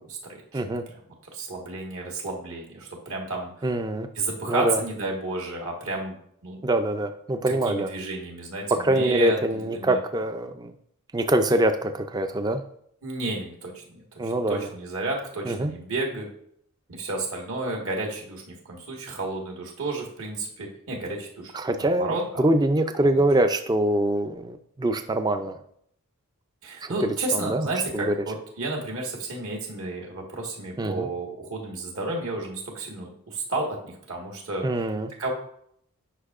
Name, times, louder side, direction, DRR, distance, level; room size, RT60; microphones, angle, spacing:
voice 1, 0.3-0.6 0.9-1.0 1.3-3.7 4.1-6.2 6.4-6.6 7.6-10.0 13.0-16.3 16.9-22.4 22.9-23.2 26.6-34.6 35.2-35.3, right 2 dB, 65° right, 0 dB, 1.6 m, -32 dB
voice 2, 3.6-4.1 4.5-4.8 6.6-7.9 8.8-10.7 11.1-12.6 14.2-14.7 15.5-15.7 21.5-25.6 26.8-26.9 27.3-27.7 27.9-28.2 30.8-31.1 34.6-35.1, right 1 dB, 20° right, 8 dB, 0.3 m, -24 dB
10.0 x 5.3 x 2.5 m, 0.69 s
head